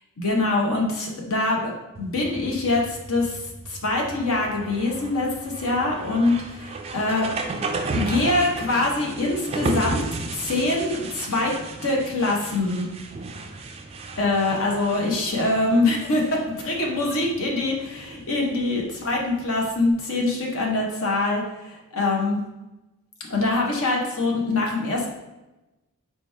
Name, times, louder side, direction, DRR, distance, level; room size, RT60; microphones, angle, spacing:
voice 1, 0.2-7.4 7.9-11.5 11.8-12.9 14.2-22.4 23.3-25.1, left 2 dB, 65° left, -1 dB, 0.8 m, -24 dB
sound 1, 1.9-19.9, right 3 dB, 25° right, 0.3 m, -34 dB
4.5 x 2.9 x 3.3 m, 1.0 s
head